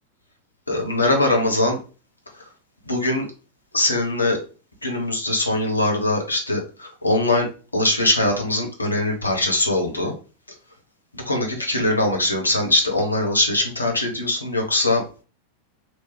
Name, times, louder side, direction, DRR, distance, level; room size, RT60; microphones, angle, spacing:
voice 1, 0.7-1.8 2.9-3.2 3.7-4.4 4.8-10.1 11.1-15.0, left 2 dB, 80° left, 2 dB, 0.9 m, -22 dB
3.1 x 3.0 x 3.1 m, 0.35 s
figure-of-eight pair, 90°, 0 cm